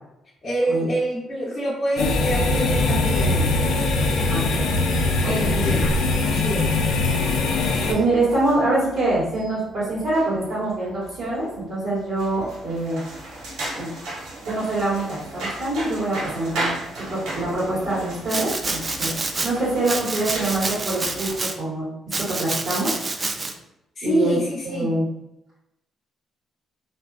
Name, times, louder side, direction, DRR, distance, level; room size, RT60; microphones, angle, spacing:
voice 1, 0.4-3.6 5.2-5.9 6.2-6.7 24.0-25.0, right 1 dB, 35° left, -7 dB, 0.7 m, -26 dB
sound 1, 2.0-7.9, left 2 dB, 80° left, 0.4 m, -21 dB
voice 2, 4.3-4.6 5.2-5.5 7.9-13.0 13.7-13.9 14.4-16.8 17.1-19.1 19.4-21.9 22.2-22.9 24.0-24.4 24.6-25.0, right 2 dB, 65° right, -9 dB, 1.4 m, -25 dB
sound 2, 6.3-21.4, right 1 dB, 85° right, 0.7 m, -37 dB
Domestic sounds home sounds, 18.3-19.5 19.8-21.6 22.1-23.5, right 3 dB, 30° right, 0.3 m, -28 dB
2.6 x 2.2 x 2.3 m, 0.88 s
cardioid pair, 90°, 0 cm